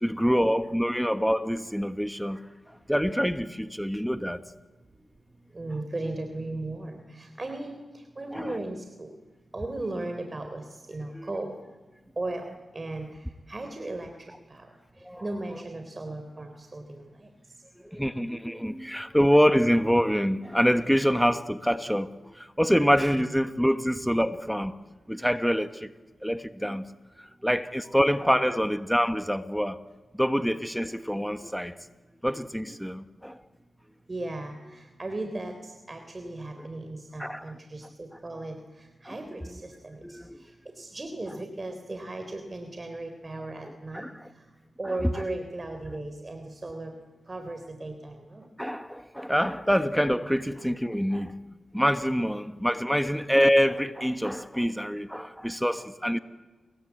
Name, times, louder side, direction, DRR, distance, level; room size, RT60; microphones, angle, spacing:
voice 1, 0.0-2.4 2.9-4.4 8.3-8.5 11.1-11.3 15.0-15.2 17.9-24.8 25.1-25.9 26.2-26.8 27.4-29.8 30.1-31.7 32.2-33.4 37.2-37.4 39.0-39.1 40.0-40.4 43.9-44.1 48.6-51.3 51.7-56.2, equal, ahead, 1.3 m, -25 dB
voice 2, 5.5-9.1 9.5-11.6 12.1-14.7 15.2-17.3 23.1-23.3 34.1-44.5 44.8-46.9 47.3-48.5, right 2 dB, 35° right, 3.6 m, -37 dB
29.0 x 21.5 x 8.4 m
cardioid pair, 55°, 0 cm